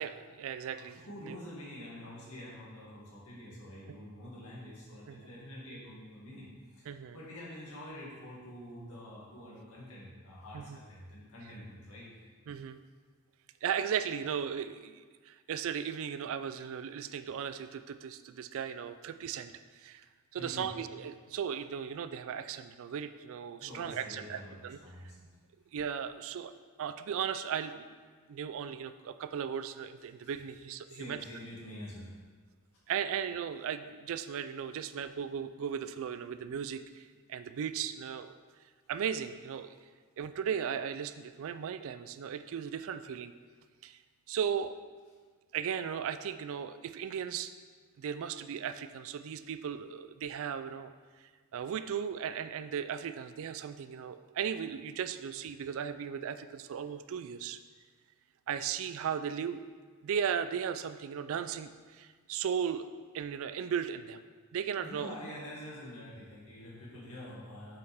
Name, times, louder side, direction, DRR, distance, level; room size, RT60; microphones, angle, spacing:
voice 1, 0.0-1.4 5.1-5.2 6.9-7.2 10.5-10.8 12.5-12.8 13.6-19.5 19.8-20.0 20.3-24.8 25.7-26.5 26.8-27.9 28.3-31.2 32.9-38.3 38.9-39.7 40.2-43.3 43.8-44.0 44.3-44.7 45.5-47.5 48.0-50.9 51.5-57.6 58.5-59.6 60.0-62.8 63.1-64.2 64.5-65.2, right 8 dB, 65° right, 11 dB, 0.3 m, -36 dB
voice 2, 0.7-6.8 7.1-12.1 20.4-20.7 23.6-25.3 30.9-32.2 64.8-67.8, left 1 dB, 70° left, -6 dB, 2.2 m, -47 dB
7.7 x 5.4 x 3.5 m, 1.5 s
head